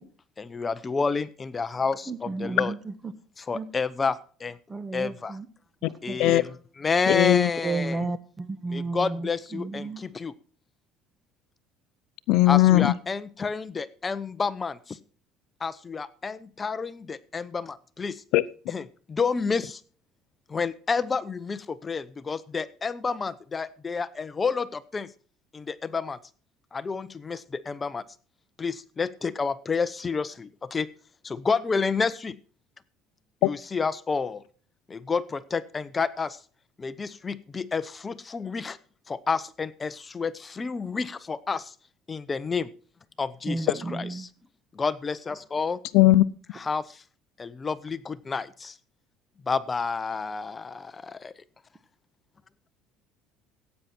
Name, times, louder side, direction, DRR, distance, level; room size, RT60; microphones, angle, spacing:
voice 1, 0.4-2.7 3.4-4.6 4.9-5.4 6.0-8.0 8.7-10.3 12.5-15.0 15.6-18.2 18.7-18.8 19.1-19.8 20.5-25.1 25.5-26.2 26.7-28.0 28.6-30.9 31.2-32.4 33.4-34.4 34.9-36.4 36.8-38.8 39.1-41.7 42.1-42.7 43.2-44.3 44.7-45.8 46.5-47.0 47.4-48.8 49.5-51.3, left 5 dB, 25° left, 0.7 m, -30 dB
voice 2, 2.1-3.1 3.5-3.7 4.7-5.5 5.8-6.3 7.6-10.0 43.4-44.2, right 3 dB, 20° right, 1.2 m, -33 dB
voice 3, 7.1-7.5 12.3-12.9 18.3-18.4 45.9-46.2, left 16 dB, 75° left, 0.6 m, -18 dB
15.0 x 9.2 x 4.4 m
cardioid pair, 115°, 0 cm